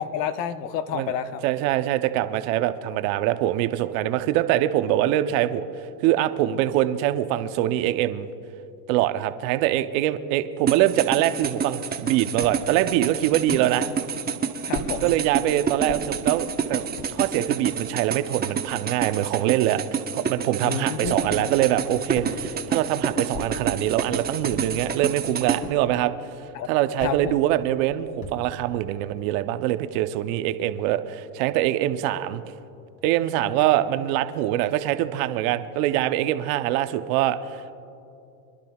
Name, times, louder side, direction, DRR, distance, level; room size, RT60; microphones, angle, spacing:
voice 1, 0.0-1.4 14.7-15.1 20.6-21.5 26.5-26.7 27.0-27.3, left 8 dB, 75° left, 11 dB, 0.9 m, -30 dB
voice 2, 1.4-5.6 6.0-8.3 8.9-13.9 15.0-26.1 26.7-32.4 33.0-37.7, right 13 dB, 55° right, 10 dB, 0.8 m, -24 dB
sound 1, 10.7-25.6, right 7 dB, 20° right, 1.0 m, -28 dB
sound 2, 12.4-12.6 13.5-13.7 14.7-15.0 15.9-16.1 16.8-17.1 17.9-18.0 18.2-19.2 21.0-21.4 22.1-22.5 23.3-23.7 24.5-24.8 25.6-26.0 27.0-27.2 28.2-28.6, left 2 dB, 40° left, 2.7 m, -37 dB
27.0 x 11.5 x 2.4 m, 2.7 s
supercardioid pair, 115°, 49 cm